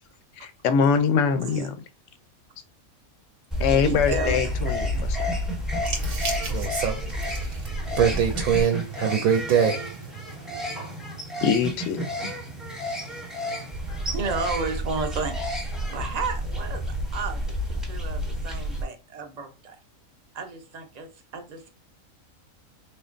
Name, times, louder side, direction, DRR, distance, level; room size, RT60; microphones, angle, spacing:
voice 1, 0.4-1.7 3.6-5.3 11.4-12.3, left 6 dB, 70° left, 0.9 m, -23 dB
sound 1, 3.5-18.8, equal, ahead, 0.6 m, -30 dB
voice 2, 3.7-4.6 4.9-5.5 14.1-19.8 20.3-21.7, right 4 dB, 45° right, 0.6 m, -33 dB
voice 3, 5.8-11.0, right 7 dB, 80° right, 1.0 m, -26 dB
4.3 x 3.0 x 2.5 m
omnidirectional pair, 1.5 m